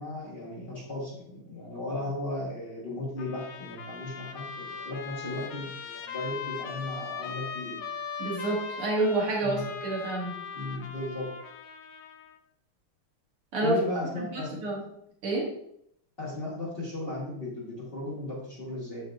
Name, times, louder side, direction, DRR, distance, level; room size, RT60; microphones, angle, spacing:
voice 1, 0.0-7.8 9.4-9.7 10.5-11.3 13.6-14.6 16.2-19.0, left 2 dB, 30° left, -6 dB, 1.5 m, -36 dB
Trumpet, 3.2-12.4, left 6 dB, 70° left, 1.1 m, -40 dB
voice 2, 8.2-10.4 13.5-13.8 14.2-14.8 15.2-15.5, right 2 dB, 75° right, -2 dB, 2.3 m, -28 dB
6.9 x 6.6 x 2.6 m, 0.72 s
omnidirectional pair, 2.4 m